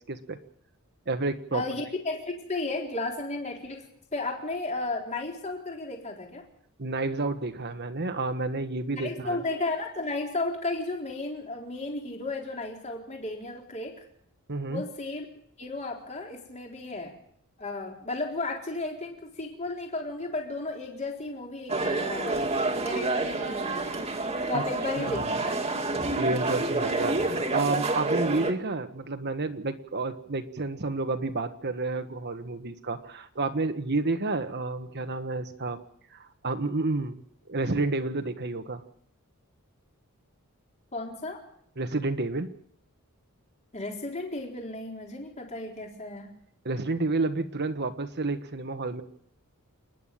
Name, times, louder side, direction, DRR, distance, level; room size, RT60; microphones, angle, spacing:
voice 1, 0.1-0.4 1.1-1.6 6.8-9.4 14.5-14.8 24.5-24.6 25.1-25.4 26.2-35.8 36.1-37.2 37.5-38.8 41.8-42.5 46.6-49.0, right 3 dB, 50° right, 8 dB, 1.4 m, -30 dB
voice 2, 1.5-3.8 4.1-6.4 9.0-14.1 14.7-15.3 15.6-17.2 17.6-22.4 22.8-24.1 24.5-25.6 40.9-41.4 43.7-46.3, left 2 dB, 30° left, 0 dB, 4.0 m, -34 dB
sound 1, 21.7-28.5, right 2 dB, 30° right, 2.1 m, -28 dB
28.0 x 10.5 x 9.2 m, 0.67 s
head